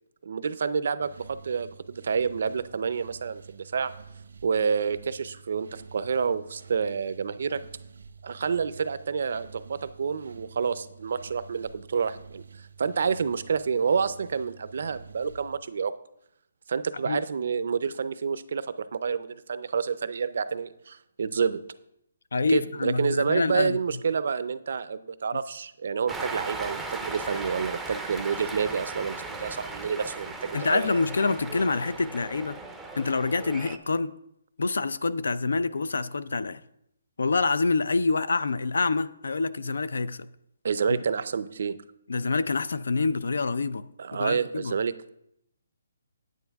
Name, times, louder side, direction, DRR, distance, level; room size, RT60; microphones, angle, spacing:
voice 1, 0.2-3.9 4.4-7.6 8.2-15.9 16.7-21.6 22.5-31.0 40.6-41.8 44.0-45.1, right 6 dB, 55° right, 0.5 m, -29 dB
sound 1, 1.0-15.6, right 5 dB, 80° right, 0.8 m, -48 dB
voice 2, 22.3-23.8 30.5-32.6 33.0-34.1 34.6-36.6 37.2-40.3 40.9-41.0 42.1-44.7, left 3 dB, 80° left, 0.5 m, -26 dB
Cheering, 26.1-33.8, right 3 dB, 5° right, 0.5 m, -37 dB
9.2 x 8.8 x 3.5 m
hypercardioid pair, 170°, 0 cm